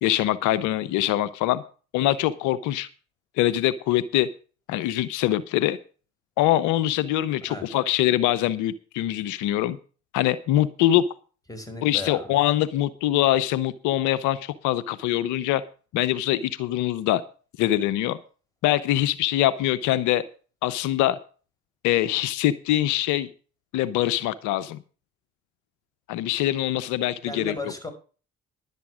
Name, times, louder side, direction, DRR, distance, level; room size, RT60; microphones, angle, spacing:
voice 1, 0.0-1.6 1.9-2.9 3.4-4.3 4.7-5.8 6.4-9.8 10.1-11.0 11.8-15.6 15.9-17.2 17.6-18.2 18.6-20.2 20.6-21.2 21.8-23.3 23.7-24.8 26.1-27.5, left 13 dB, 85° left, 15 dB, 0.7 m, -23 dB
voice 2, 11.5-12.4 27.3-27.9, left 2 dB, 10° left, 6 dB, 5.1 m, -35 dB
11.0 x 8.4 x 6.2 m, 0.37 s
supercardioid pair, 65°, 29 cm